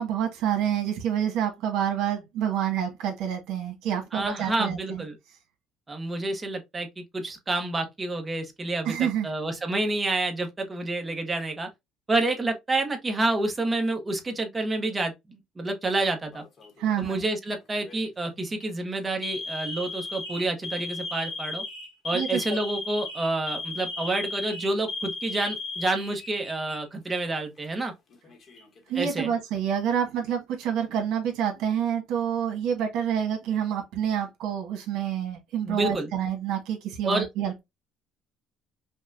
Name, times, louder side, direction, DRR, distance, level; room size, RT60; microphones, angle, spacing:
voice 1, 0.0-5.0 8.8-9.3 16.8-17.2 22.1-22.6 28.9-37.6, right 9 dB, 75° right, 1.4 m, -28 dB
voice 2, 4.1-5.2 5.9-9.0 9.2-11.7 12.1-16.4 17.0-21.6 22.0-27.9 28.9-29.3 35.7-36.1 37.0-37.3, right 2 dB, 15° right, 0.9 m, -28 dB
Alarm, 16.3-16.8 17.7-18.0 18.5-18.6 19.2-26.8 27.1-27.2 28.1-28.8, left 3 dB, 35° left, 1.0 m, -36 dB
5.3 x 2.2 x 2.6 m
cardioid pair, 165°, 0 cm